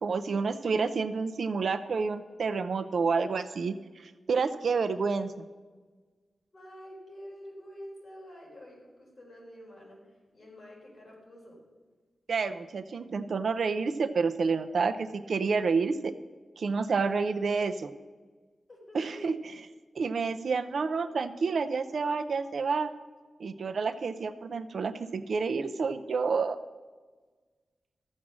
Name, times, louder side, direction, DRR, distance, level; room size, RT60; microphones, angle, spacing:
voice 1, 0.0-3.7 4.3-5.3 12.3-16.1 16.6-17.9 18.9-19.4 20.0-22.9 23.4-26.6, right 4 dB, 65° right, 10 dB, 0.5 m, -29 dB
voice 2, 6.5-11.6 18.7-19.2, equal, 40° left, -4 dB, 4.1 m, -48 dB
13.5 x 7.4 x 6.1 m, 1.4 s
wide cardioid pair, 155°, 0 cm